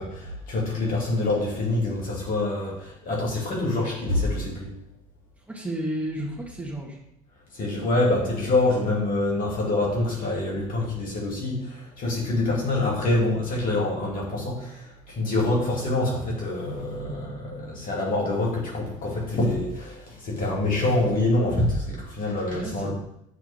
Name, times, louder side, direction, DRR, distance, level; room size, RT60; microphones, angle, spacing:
voice 1, 0.0-4.7 7.5-22.9, left 2 dB, 55° left, -3 dB, 2.8 m, -26 dB
voice 2, 5.5-7.0 22.5-22.9, right 1 dB, 10° right, -3 dB, 2.0 m, -32 dB
7.8 x 4.4 x 3.7 m, 0.78 s
hypercardioid pair, 65°, 17 cm